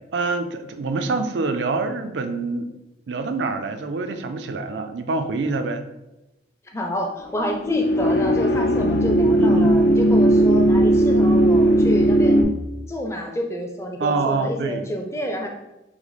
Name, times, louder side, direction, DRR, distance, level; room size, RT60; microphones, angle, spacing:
voice 1, 0.1-2.7 3.1-5.8 9.4-9.8 14.0-14.9, right 3 dB, 80° right, 8 dB, 0.4 m, -25 dB
voice 2, 6.7-12.4 12.9-15.5, equal, 15° left, 1 dB, 0.5 m, -28 dB
sound 1, 7.4-12.4, right 1 dB, 70° left, 0.5 m, -17 dB
5.9 x 2.0 x 4.0 m, 0.97 s
head